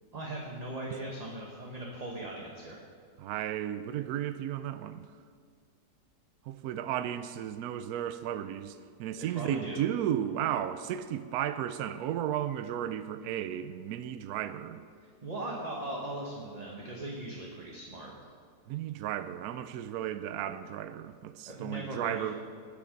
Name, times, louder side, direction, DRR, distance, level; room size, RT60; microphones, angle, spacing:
voice 1, 0.1-2.8 9.2-9.8 15.2-18.1 21.5-22.3, right 1 dB, 25° right, -2 dB, 1.2 m, -39 dB
voice 2, 3.2-5.0 6.5-14.8 18.7-22.3, right 10 dB, 70° right, 11 dB, 1.0 m, -34 dB
20.0 x 6.9 x 5.2 m, 2.1 s
omnidirectional pair, 1.9 m